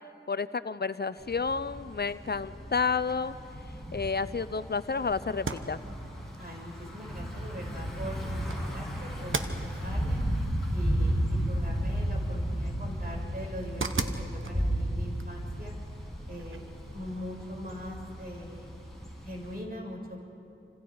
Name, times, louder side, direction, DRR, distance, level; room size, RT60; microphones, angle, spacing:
voice 1, 0.3-3.3 3.9-5.8, left 5 dB, 50° left, 14 dB, 0.6 m, -30 dB
Thunder / Bicycle, 1.2-19.6, equal, ahead, 6.7 m, -34 dB
sound 1, 5.3-16.9, right 3 dB, 70° right, 1.2 m, -41 dB
voice 2, 6.4-9.5 9.8-10.2 10.7-15.7 16.3-18.7 19.2-20.2, equal, 45° right, -1 dB, 5.8 m, -42 dB
29.0 x 26.0 x 4.7 m, 2.6 s
cardioid pair, 40°, 21 cm